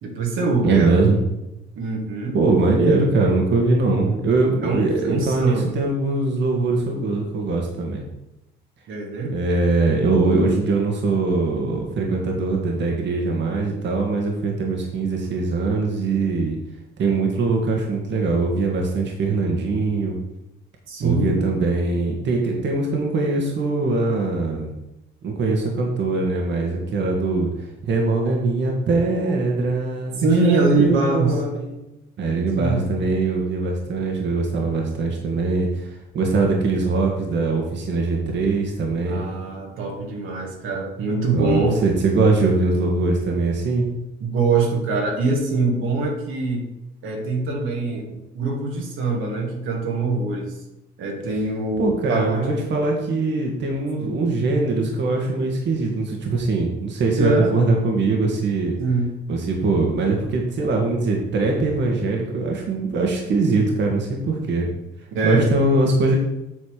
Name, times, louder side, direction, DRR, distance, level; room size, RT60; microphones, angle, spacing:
voice 1, 0.0-1.0 1.8-2.4 4.6-5.7 8.9-9.3 20.9-21.4 28.2-28.3 30.2-31.4 32.5-32.9 39.1-41.8 44.2-46.7 47.0-50.5 51.0-52.5 54.0-54.2 57.2-57.6 58.8-59.2 65.1-65.5, right 3 dB, 85° right, 0 dB, 2.0 m, -23 dB
voice 2, 0.6-1.2 2.3-8.0 9.3-16.6 17.0-20.2 21.0-24.7 25.2-31.8 32.2-39.2 41.3-43.9 51.8-58.7 59.3-64.7 65.2-66.2, right 3 dB, 65° right, 1 dB, 1.8 m, -22 dB
8.1 x 4.2 x 6.5 m, 0.93 s
cardioid pair, 90°, 20 cm